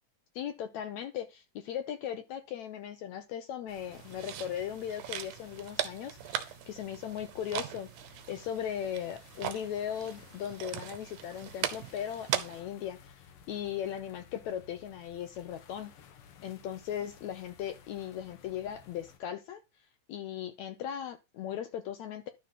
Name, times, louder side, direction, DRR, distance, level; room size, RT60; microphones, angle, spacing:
voice 1, 0.4-7.9 8.3-15.9 16.4-19.6 20.1-22.3, left 10 dB, 75° left, 1.7 m, -38 dB
sound 1, 3.7-19.2, left 7 dB, 90° left, 1.2 m, -57 dB
sound 2, 3.9-12.6, right 11 dB, 85° right, 2.7 m, -39 dB
12.0 x 4.0 x 5.8 m
omnidirectional pair, 4.1 m